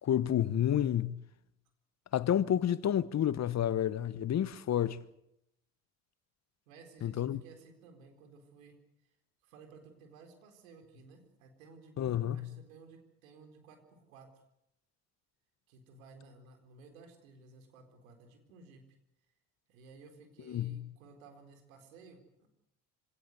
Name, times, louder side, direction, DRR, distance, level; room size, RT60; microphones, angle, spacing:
voice 1, 0.0-1.2 2.1-5.0 7.0-7.4 12.0-12.4 20.5-20.9, left 10 dB, 40° left, 1.1 m, -30 dB
voice 2, 6.7-8.8 9.4-14.3 15.7-18.8 19.7-22.5, right 4 dB, 85° right, 4.3 m, -56 dB
26.0 x 18.0 x 8.2 m
hypercardioid pair, 70°, 40 cm